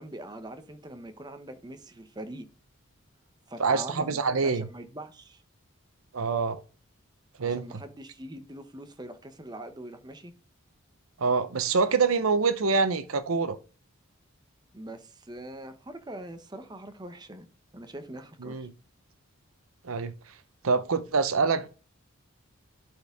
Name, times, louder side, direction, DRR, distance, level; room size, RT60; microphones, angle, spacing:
voice 1, 0.0-2.5 3.5-5.4 7.4-10.3 14.7-17.5 17.7-18.7, right 1 dB, 20° right, 0.7 m, -43 dB
voice 2, 3.6-4.7 6.1-6.6 7.4-7.6 11.2-13.6 18.4-18.7 19.8-20.1 20.6-21.7, right 4 dB, 80° right, 0.7 m, -25 dB
11.5 x 4.4 x 3.5 m
head